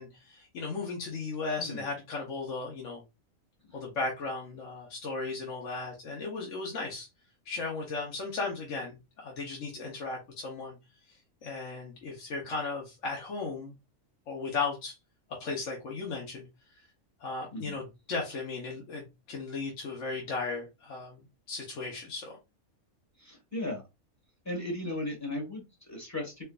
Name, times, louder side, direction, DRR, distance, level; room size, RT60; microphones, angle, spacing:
voice 1, 0.0-3.0 3.7-7.1 7.5-10.8 11.4-13.7 14.3-15.0 15.4-16.5 17.2-22.4, left 3 dB, 65° left, 1.2 m, -36 dB
voice 2, 23.2-23.8 24.4-26.4, left 1 dB, 10° left, 1.4 m, -36 dB
4.4 x 2.6 x 2.4 m
omnidirectional pair, 1.5 m